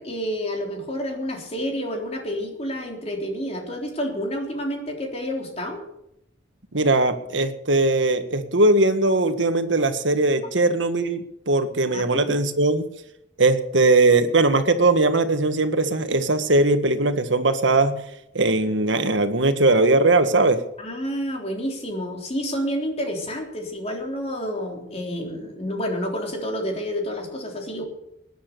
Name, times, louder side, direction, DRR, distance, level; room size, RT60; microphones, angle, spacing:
voice 1, 0.0-5.8 11.9-12.4 20.8-27.8, equal, 35° left, 1 dB, 3.6 m, -29 dB
voice 2, 6.7-12.8 13.4-18.0 18.3-20.6, right 2 dB, 80° right, 8 dB, 1.7 m, -20 dB
20.0 x 10.0 x 6.9 m, 0.80 s
head